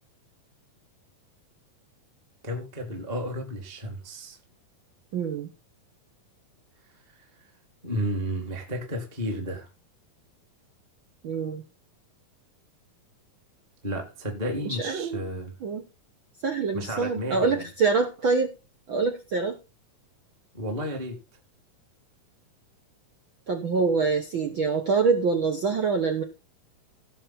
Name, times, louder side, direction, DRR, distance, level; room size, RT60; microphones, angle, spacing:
voice 1, 2.4-4.4 7.1-7.2 7.8-9.7 13.8-15.5 16.7-17.7 20.5-21.2, equal, 15° right, 1.7 m, -32 dB
voice 2, 5.1-5.5 11.2-11.6 14.6-15.2 15.6-15.8 16.4-18.5 18.9-19.6 23.5-26.2, right 4 dB, 70° right, 1.2 m, -25 dB
17.0 x 6.5 x 4.2 m
omnidirectional pair, 4.0 m